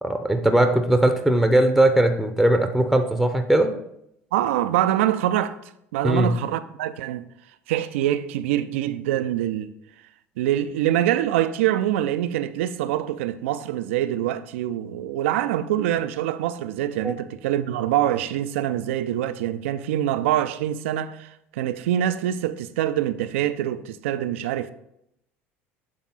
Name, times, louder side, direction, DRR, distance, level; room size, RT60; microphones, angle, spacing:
voice 1, 0.0-3.7 6.0-6.3 17.0-17.1, right 1 dB, ahead, 0.7 m, -19 dB
voice 2, 4.3-5.6 5.9-7.2 7.7-9.7 10.4-24.7, right 12 dB, 75° right, 0.4 m, -25 dB
7.6 x 3.5 x 4.0 m
hypercardioid pair, 70°, 7 cm